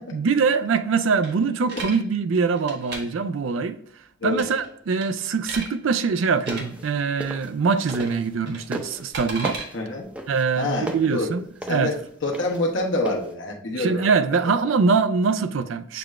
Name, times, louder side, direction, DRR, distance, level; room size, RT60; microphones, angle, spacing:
voice 1, 0.1-3.8 4.2-9.6 10.3-11.9 13.8-16.0, right 5 dB, 80° right, 0.4 m, -23 dB
sound 1, 1.2-2.0 2.6-3.0 4.3-4.7 5.0-5.7 6.4-6.6 7.8-8.2 8.5-9.7, right 3 dB, 60° right, 1.3 m, -35 dB
sound 2, 6.3-8.4 8.7-13.3, equal, 5° right, 0.5 m, -35 dB
voice 2, 9.7-10.1 10.6-11.3 11.7-12.0 12.2-14.1, left 2 dB, 70° left, 1.1 m, -26 dB
6.9 x 2.4 x 3.1 m
head